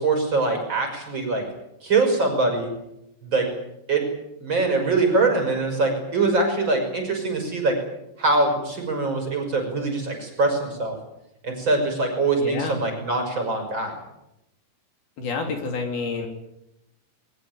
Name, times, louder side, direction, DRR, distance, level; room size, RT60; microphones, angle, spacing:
voice 1, 0.0-1.4 1.8-2.7 3.2-3.5 3.9-4.1 4.4-7.8 8.2-11.0 11.4-13.9, right 3 dB, 25° right, 4 dB, 6.6 m, -23 dB
voice 2, 12.4-12.8 15.2-16.3, left 4 dB, 65° left, 4 dB, 5.0 m, -28 dB
22.0 x 20.5 x 9.4 m, 0.87 s
omnidirectional pair, 4.9 m